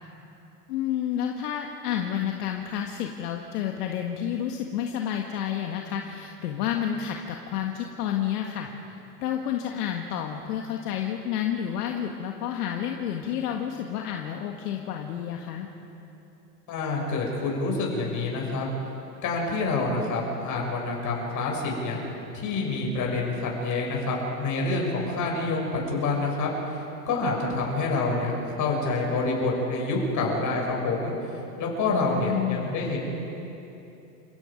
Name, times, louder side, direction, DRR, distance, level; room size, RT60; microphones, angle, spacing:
voice 1, 0.7-8.7 9.2-15.7 31.9-32.7, left 9 dB, 70° left, 2 dB, 1.7 m, -30 dB
voice 2, 16.7-18.7 19.2-22.0 22.3-31.1 31.6-33.0, left 3 dB, 40° left, -1 dB, 6.7 m, -27 dB
29.5 x 16.5 x 5.2 m, 2.9 s
hypercardioid pair, 110°, 48 cm